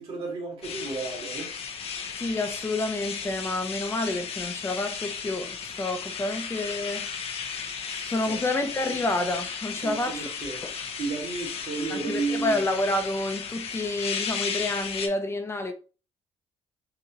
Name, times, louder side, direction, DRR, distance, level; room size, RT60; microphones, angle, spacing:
voice 1, 0.0-1.5 7.9-8.0 8.8-9.0 9.8-10.6 11.0-12.6, right 4 dB, 55° right, 2.2 m, -32 dB
sound 1, 0.6-15.1, left 6 dB, 60° left, 0.9 m, -35 dB
voice 2, 2.2-7.1 8.1-10.3 10.6-10.7 11.9-15.7, left 2 dB, 20° left, 0.8 m, -29 dB
5.8 x 2.5 x 3.0 m
cardioid pair, 90°, 11 cm